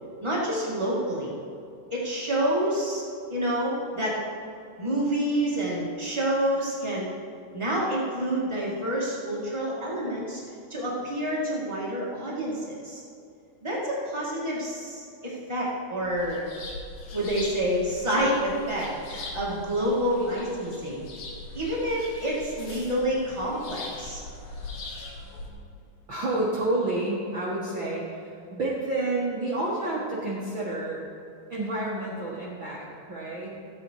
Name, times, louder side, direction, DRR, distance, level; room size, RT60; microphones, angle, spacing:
voice 1, 0.2-1.4 1.9-3.0 3.3-4.2 4.8-7.1 7.5-10.4 10.7-13.0 13.6-16.5 17.1-21.0 21.5-24.2, equal, 30° right, -7 dB, 0.5 m, -28 dB
sound 1, 16.0-25.5, left 2 dB, 55° left, 2.3 m, -41 dB
voice 2, 26.1-31.0 31.5-33.5, right 2 dB, 85° right, -6 dB, 1.0 m, -29 dB
15.0 x 8.5 x 4.7 m, 2.5 s
omnidirectional pair, 4.7 m